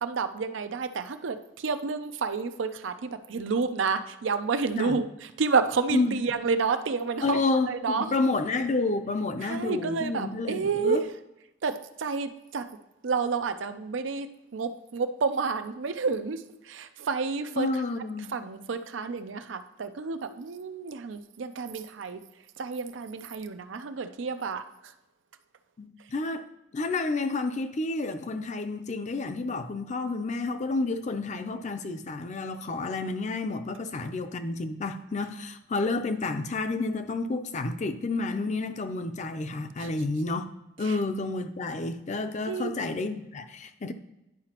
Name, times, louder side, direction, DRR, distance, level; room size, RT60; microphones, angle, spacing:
voice 1, 0.0-8.1 9.4-11.1 11.6-12.7 13.0-17.8 18.3-22.2 22.6-24.9 39.8-39.9 40.8-41.0 42.5-42.7, right 4 dB, 85° right, 0.5 m, -30 dB
voice 2, 7.2-11.0 17.6-18.3 25.8-26.5 26.7-40.5 40.8-43.9, left 3 dB, 40° left, 0.5 m, -30 dB
10.5 x 4.8 x 2.9 m
head